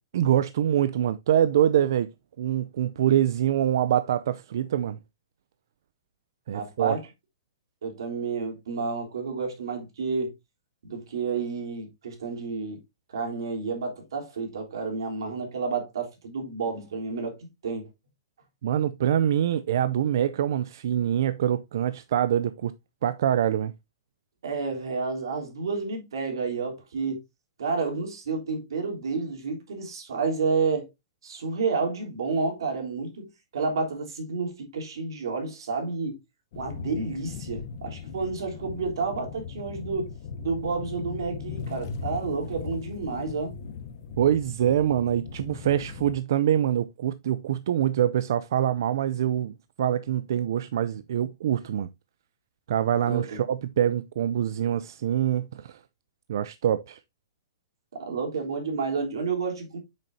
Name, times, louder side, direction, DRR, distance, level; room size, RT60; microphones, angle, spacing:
voice 1, 0.1-2.1 2.4-5.0 6.5-7.0 18.6-22.7 23.0-23.7 44.2-51.9 52.7-55.8 56.3-57.0, right 10 dB, 55° right, 0.4 m, -25 dB
voice 2, 6.5-7.0 7.8-10.3 10.8-12.8 13.1-17.9 24.4-27.2 27.6-30.9 31.2-36.2 36.6-40.1 40.4-43.6 53.1-53.4 57.9-59.8, right 4 dB, 80° right, 3.5 m, -30 dB
sound 1, 36.5-46.2, left 6 dB, 40° left, 0.8 m, -38 dB
8.3 x 6.4 x 2.7 m
hypercardioid pair, 175°, 2 cm